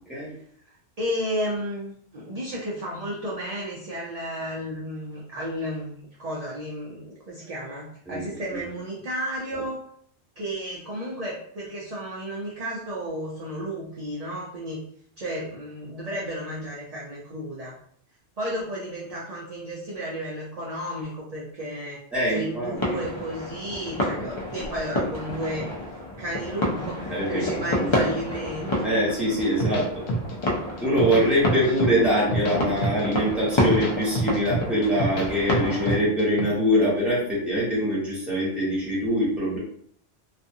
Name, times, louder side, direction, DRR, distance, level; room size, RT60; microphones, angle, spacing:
voice 1, 0.6-9.8 10.4-14.8 15.2-17.7 18.4-22.0 22.3-25.7 26.2-28.7, equal, 45° right, -5 dB, 0.5 m, -33 dB
voice 2, 22.1-23.0 27.1-27.9 28.8-30.0 30.8-39.6, equal, ahead, -8 dB, 1.2 m, -24 dB
sound 1, 22.8-36.0, left 1 dB, 35° left, 0.5 m, -29 dB
sound 2, 29.6-30.5 30.8-31.9 32.2-33.2 33.5-35.3 35.5-36.4, right 1 dB, 65° left, 0.8 m, -27 dB
2.5 x 2.4 x 2.6 m, 0.64 s
omnidirectional pair, 1.2 m